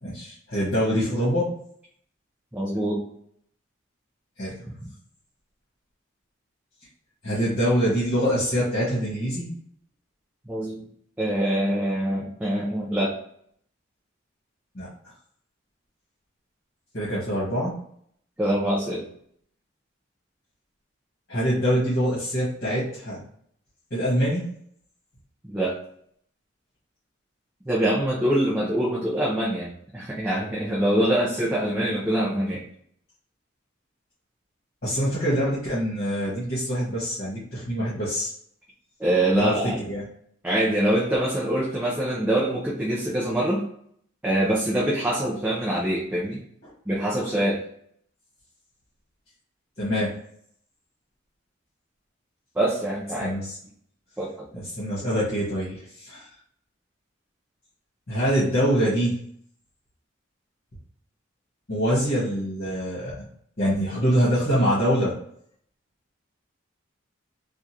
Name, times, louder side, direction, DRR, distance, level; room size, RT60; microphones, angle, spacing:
voice 1, 0.0-1.5 4.4-4.6 7.2-9.5 14.7-14.9 16.9-17.7 21.3-23.2 23.9-24.5 34.8-38.3 39.3-39.5 39.9-40.0 49.8-50.1 53.2-53.6 54.5-56.3 58.1-59.1 61.7-63.3 63.6-65.1, equal, 50° left, -9 dB, 1.4 m, -24 dB
voice 2, 2.5-3.0 10.5-10.8 11.2-13.2 18.4-19.0 25.4-25.8 27.7-32.6 39.0-39.8 40.4-43.6 44.2-46.4 46.9-47.6 52.6-53.3 54.2-54.5, right 1 dB, 10° right, -6 dB, 0.6 m, -24 dB
3.5 x 2.5 x 2.8 m, 0.67 s
head